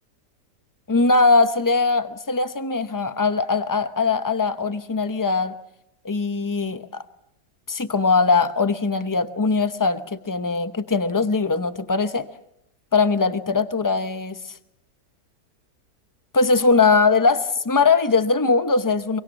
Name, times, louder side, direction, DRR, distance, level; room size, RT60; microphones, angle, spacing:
voice 1, 0.9-5.5 6.0-7.0 7.7-12.3 12.9-14.4 16.3-19.2, left 4 dB, 20° left, 11 dB, 0.5 m, -20 dB
24.5 x 24.0 x 7.1 m, 0.81 s
omnidirectional pair, 1.8 m